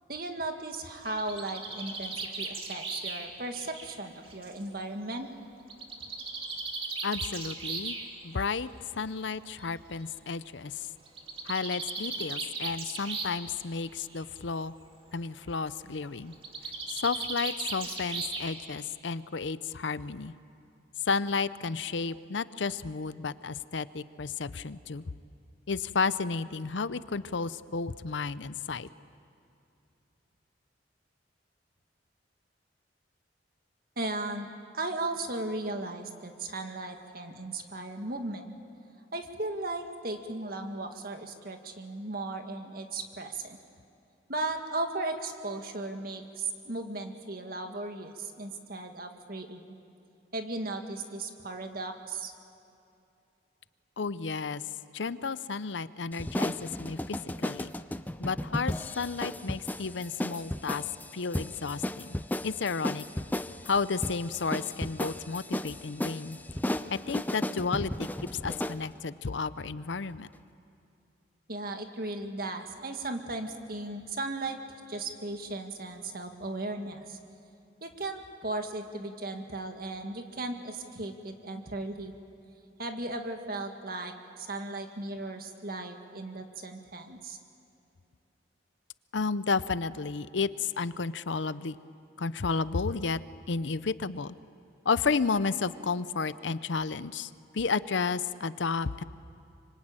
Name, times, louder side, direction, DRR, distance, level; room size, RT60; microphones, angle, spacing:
voice 1, 0.1-5.3 34.0-38.5 39.1-43.6 44.3-49.8 50.3-52.3 71.5-74.6 74.9-77.2 77.8-82.1 82.8-87.4, right 2 dB, 50° right, 5 dB, 2.0 m, -36 dB
Bird, 0.8-4.6 5.7-8.1 9.1-9.2 9.6-9.7 9.9-10.0 11.1-13.5 13.8-14.2 16.3-18.8, right 3 dB, 30° right, 2.3 m, -37 dB
voice 2, 7.0-8.0 8.2-8.7 9.0-10.9 11.5-14.7 15.1-16.3 16.9-20.3 21.0-25.0 25.7-28.9 54.0-54.6 54.9-57.7 58.2-60.8 61.1-62.2 62.4-66.4 66.9-70.3 89.1-91.8 92.2-93.2 93.5-94.3 94.8-99.0, left 4 dB, 80° left, 15 dB, 0.7 m, -32 dB
sound 1, 56.1-68.8, left 1 dB, 10° left, 0.5 m, -35 dB
25.5 x 24.5 x 9.0 m, 2.7 s
head